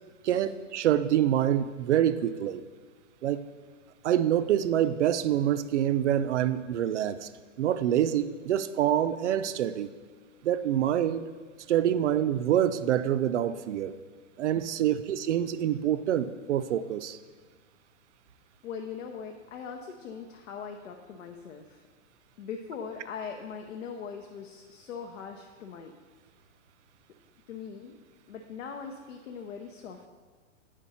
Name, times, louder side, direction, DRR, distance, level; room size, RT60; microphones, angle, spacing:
voice 1, 0.2-2.6 3.2-3.4 4.0-7.3 7.6-9.9 10.4-11.2 11.7-14.0 14.4-17.2, right 11 dB, 65° right, 13 dB, 0.5 m, -26 dB
voice 2, 18.6-21.8 22.4-25.9 27.5-28.0 28.3-30.1, left 6 dB, 75° left, 3 dB, 0.8 m, -41 dB
9.1 x 5.1 x 4.2 m, 1.5 s
hypercardioid pair, 175°, 38 cm